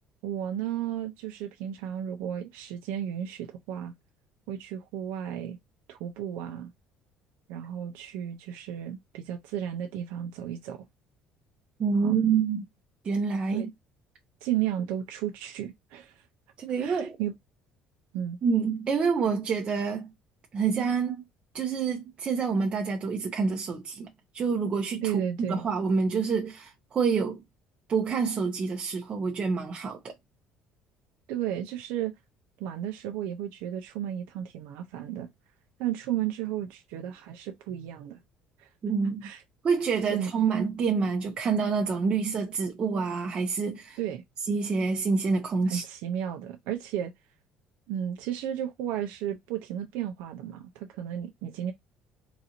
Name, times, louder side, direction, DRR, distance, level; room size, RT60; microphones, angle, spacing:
voice 1, 0.2-3.9 4.5-5.6 5.9-6.7 7.5-10.9 12.0-12.4 13.5-13.7 14.4-16.2 16.8-17.3 18.1-18.4 25.0-25.6 31.3-32.1 32.6-35.3 35.8-38.2 38.6-38.7 39.2-39.4 40.1-40.3 44.0-44.2 45.7-47.1 47.9-51.7, right 10 dB, 85° right, 0.5 m, -33 dB
voice 2, 11.8-12.6 13.0-13.7 16.6-17.2 18.4-20.1 20.5-21.2 21.5-24.1 24.3-25.1 25.4-27.4 27.9-30.1 38.8-39.2 39.6-44.0 44.5-45.8, right 5 dB, 35° right, 0.7 m, -27 dB
3.9 x 2.5 x 2.8 m
cardioid pair, 135°, 3 cm